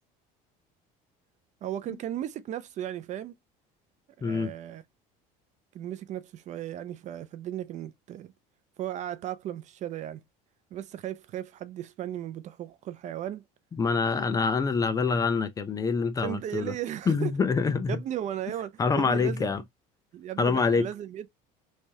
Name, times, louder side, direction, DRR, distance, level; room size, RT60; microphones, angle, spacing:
voice 1, 1.6-3.4 4.2-4.8 5.7-8.3 8.8-10.2 10.7-13.4 16.2-17.3 17.9-19.5 20.1-21.3, right 11 dB, 45° right, 0.5 m, -36 dB
voice 2, 4.2-4.5 13.8-16.7 17.1-18.0 18.8-19.6 20.4-20.9, left 5 dB, 20° left, 0.4 m, -25 dB
3.3 x 3.2 x 2.7 m
cardioid pair, 135°, 18 cm